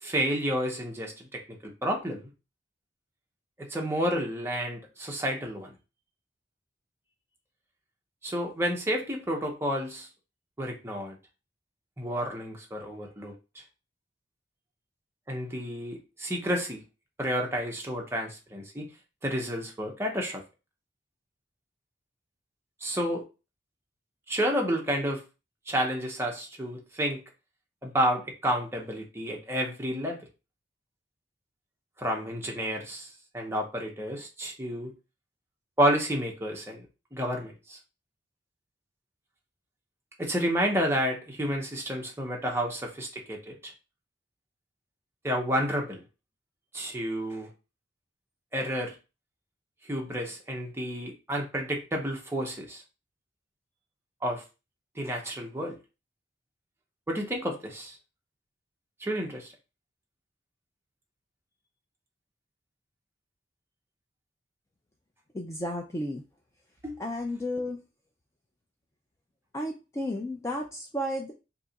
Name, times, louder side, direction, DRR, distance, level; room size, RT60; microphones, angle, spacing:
voice 1, 0.0-2.3 3.7-5.7 8.2-10.1 10.6-11.2 12.0-13.3 15.3-16.8 17.2-18.9 19.2-20.4 22.8-23.2 24.3-25.2 25.7-27.2 27.8-30.2 32.0-34.9 35.8-36.9 37.1-37.8 40.2-43.7 45.2-46.0 46.7-47.5 48.5-48.9 49.9-52.8 54.2-54.4 55.0-55.8 57.1-58.0 59.0-59.5 66.8-66.9, equal, 15° right, 0 dB, 0.7 m, -30 dB
voice 2, 65.3-66.2 67.0-67.8 69.5-71.3, left 1 dB, 15° left, 1 dB, 0.3 m, -33 dB
2.8 x 2.3 x 3.9 m, 0.30 s
head